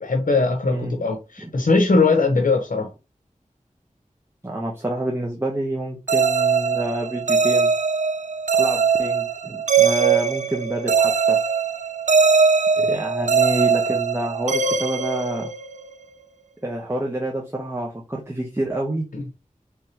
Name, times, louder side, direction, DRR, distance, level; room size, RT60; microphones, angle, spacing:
voice 1, 0.0-2.9 19.1-19.2, left 3 dB, 85° left, 0.8 m, -20 dB
voice 2, 0.7-1.0 1.4-1.5 4.4-7.7 8.5-11.4 12.8-15.5 16.6-19.1, right 1 dB, 20° right, 1.0 m, -28 dB
sound 1, 6.1-15.9, right 5 dB, 65° right, 0.4 m, -20 dB
4.7 x 3.4 x 2.9 m
wide cardioid pair, 50°, 14 cm